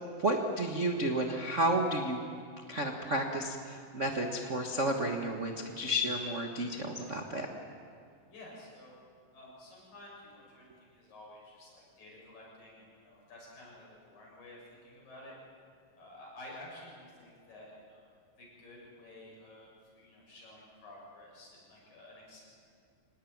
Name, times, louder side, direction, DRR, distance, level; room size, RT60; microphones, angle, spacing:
voice 1, 0.2-2.2 2.7-7.5, right 1 dB, 55° right, 2 dB, 0.7 m, -31 dB
voice 2, 8.3-8.9 9.3-15.3 16.0-18.0 18.4-22.4, left 1 dB, 75° left, -3 dB, 8.5 m, -52 dB
25.5 x 19.0 x 9.4 m, 2.3 s
omnidirectional pair, 4.0 m